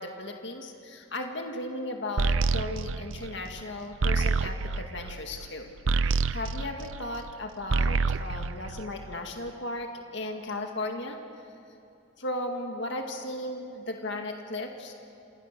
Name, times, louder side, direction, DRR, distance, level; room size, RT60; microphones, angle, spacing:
voice 1, 0.0-5.7 6.0-11.2 12.2-14.9, left 1 dB, 60° left, 3 dB, 2.1 m, -36 dB
sound 1, 2.2-7.3 7.6-9.4, right 4 dB, 75° right, 0.7 m, -28 dB
28.0 x 28.0 x 6.8 m, 2.7 s
head